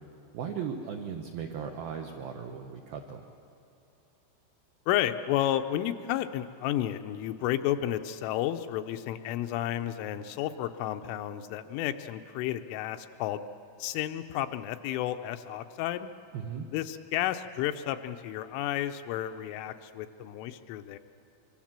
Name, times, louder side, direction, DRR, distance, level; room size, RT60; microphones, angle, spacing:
voice 1, 0.3-3.2 16.3-16.7, right 7 dB, 80° right, 3 dB, 2.1 m, -37 dB
voice 2, 4.9-13.4 13.8-16.1 16.7-21.0, left 12 dB, 80° left, 8 dB, 3.1 m, -32 dB
25.0 x 24.0 x 7.4 m, 2.7 s
omnidirectional pair, 5.8 m